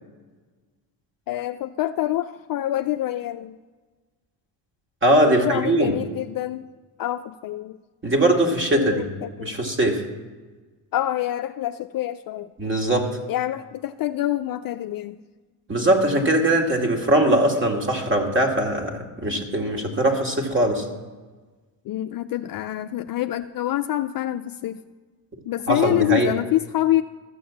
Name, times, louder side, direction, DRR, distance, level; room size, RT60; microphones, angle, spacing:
voice 1, 1.3-3.6 5.3-6.7 7.0-7.8 8.7-9.6 10.9-12.5 13.3-15.2 21.9-24.8 25.5-27.0, left 14 dB, 45° left, 8 dB, 0.4 m, -26 dB
voice 2, 5.0-5.9 8.0-9.1 9.4-10.0 12.6-13.1 15.7-20.9 25.7-26.3, right 1 dB, 25° right, 2 dB, 2.3 m, -21 dB
14.0 x 6.9 x 7.1 m, 1.3 s
supercardioid pair, 90°, 48 cm